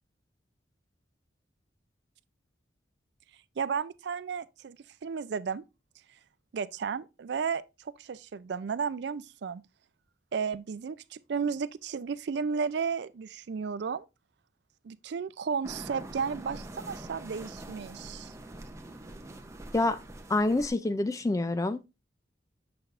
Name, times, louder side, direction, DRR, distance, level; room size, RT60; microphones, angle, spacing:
voice 1, 3.6-5.6 6.5-9.6 10.3-14.1 14.8-18.3, right 6 dB, 65° right, 0.4 m, -33 dB
sound 1, 15.6-20.7, right 1 dB, 15° right, 0.7 m, -44 dB
voice 2, 20.3-21.9, left 2 dB, 20° left, 0.3 m, -27 dB
6.7 x 5.9 x 2.5 m
head